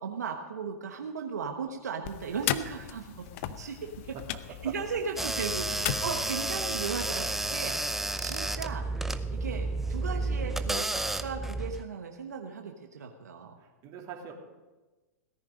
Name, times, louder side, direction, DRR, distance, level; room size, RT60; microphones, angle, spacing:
voice 1, 0.0-3.3 3.6-3.8 4.0-4.1 4.6-13.5, right 5 dB, 85° right, 3 dB, 1.2 m, -37 dB
sound 1, 2.0-6.8, left 12 dB, 50° left, 0.8 m, -37 dB
voice 2, 4.1-4.7 5.7-5.8 13.6-14.3, right 8 dB, 45° right, 1 dB, 2.8 m, -44 dB
sound 2, 5.2-11.8, right 2 dB, 5° right, 0.6 m, -31 dB
17.5 x 10.5 x 5.2 m, 1.2 s
hypercardioid pair, 110°, 9 cm